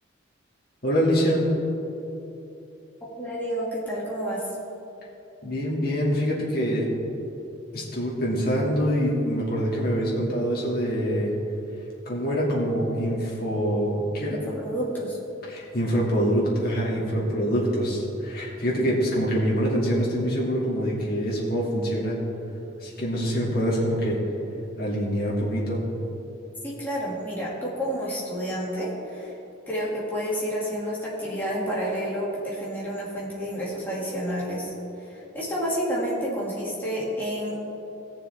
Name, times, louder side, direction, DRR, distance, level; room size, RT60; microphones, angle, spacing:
voice 1, 0.8-1.4 5.4-6.9 7.7-11.3 12.0-14.4 15.4-22.2 22.8-24.2 24.8-25.8, equal, 50° left, -5 dB, 2.5 m, -25 dB
voice 2, 3.2-4.4 14.3-15.2 26.6-29.3 29.7-34.7 35.1-37.6, equal, 10° left, -7 dB, 2.5 m, -30 dB
18.0 x 6.9 x 3.6 m, 2.9 s
head